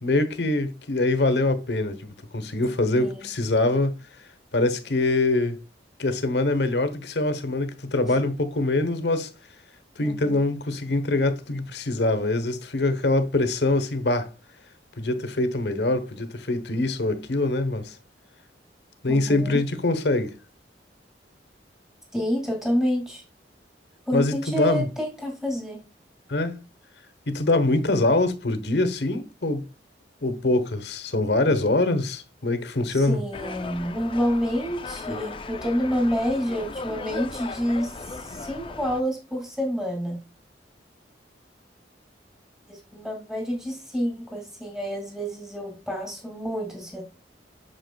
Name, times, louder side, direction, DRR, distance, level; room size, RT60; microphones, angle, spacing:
voice 1, 0.0-4.0 4.5-5.6 6.0-9.3 10.0-14.3 15.0-18.0 19.0-20.3 24.1-24.9 26.3-26.6 27.3-29.7 30.2-33.2, left 2 dB, 70° left, 1.0 m, -24 dB
voice 2, 10.0-10.4 19.1-19.6 22.1-23.2 24.1-25.8 32.9-40.2 42.7-47.0, equal, 5° right, 2.2 m, -28 dB
sound 1, 33.3-39.0, left 3 dB, 30° left, 0.5 m, -37 dB
7.9 x 6.0 x 2.3 m
head